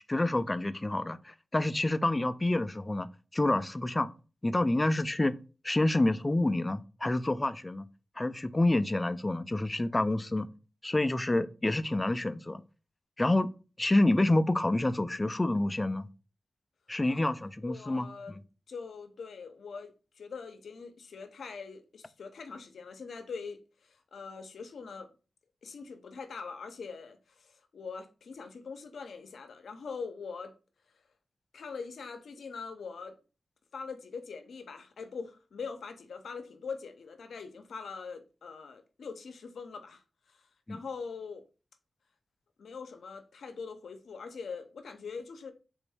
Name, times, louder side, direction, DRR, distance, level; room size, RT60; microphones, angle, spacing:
voice 1, 0.1-4.1 4.4-5.4 5.6-7.8 8.2-10.5 10.8-12.6 13.2-13.5 13.8-16.1 16.9-18.1 40.7-40.8, left 2 dB, 20° left, 0.3 m, -28 dB
voice 2, 17.6-18.4 18.7-25.1 25.6-30.5 31.5-33.2 33.7-40.0 40.3-40.4 40.7-41.4 42.6-45.5, left 5 dB, 85° left, 0.6 m, -42 dB
3.9 x 2.6 x 3.3 m
cardioid pair, 65°, 0 cm